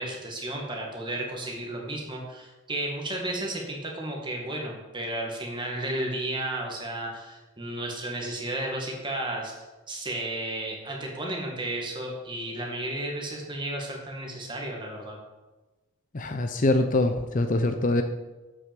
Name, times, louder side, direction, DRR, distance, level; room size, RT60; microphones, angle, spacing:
voice 1, 0.0-15.2, right 1 dB, 20° right, 0 dB, 1.9 m, -33 dB
voice 2, 16.1-18.0, left 2 dB, 35° left, 7 dB, 0.6 m, -24 dB
7.8 x 6.3 x 7.5 m, 1.1 s
head